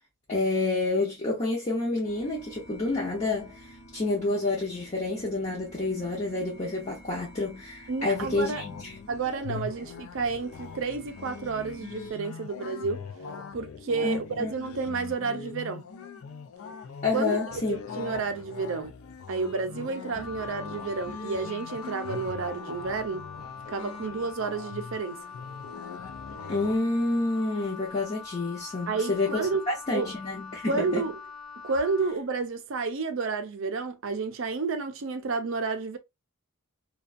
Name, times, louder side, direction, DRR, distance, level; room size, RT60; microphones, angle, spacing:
voice 1, 0.3-8.9 14.0-14.5 17.0-17.8 26.5-31.0, left 2 dB, 30° left, 0.7 m, -29 dB
sound 1, 2.0-12.1, equal, 50° left, 1.0 m, -51 dB
voice 2, 7.9-8.6 9.1-13.0 13.5-15.9 17.1-17.4 17.7-18.9 19.3-23.3 23.7-25.2 28.9-29.6 29.9-30.1 30.7-31.2 31.6-36.0, right 4 dB, 60° right, 0.4 m, -30 dB
sound 2, 8.0-26.8, left 5 dB, 75° left, 0.4 m, -41 dB
Wind instrument woodwind instrument, 20.1-32.2, left 5 dB, ahead, 0.3 m, -43 dB
2.5 x 2.2 x 2.4 m
head